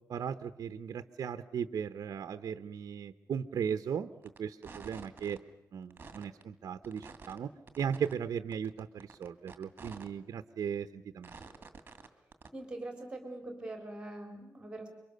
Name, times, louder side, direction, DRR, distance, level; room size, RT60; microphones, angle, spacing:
voice 1, 0.1-4.1 4.4-5.4 5.7-7.5 7.8-11.3, right 7 dB, 60° right, 10 dB, 0.8 m, -37 dB
sound 1, 4.2-4.4 4.6-5.4 5.8-6.4 6.8-7.4 7.7-8.1 8.5-10.1 10.5-10.6 11.2-12.1 12.3-12.5, right 4 dB, 30° right, 2.3 m, -49 dB
voice 2, 12.5-14.9, right 2 dB, 15° right, 4 dB, 3.7 m, -43 dB
28.5 x 24.0 x 6.7 m, 0.92 s
wide cardioid pair, 155°, 6 cm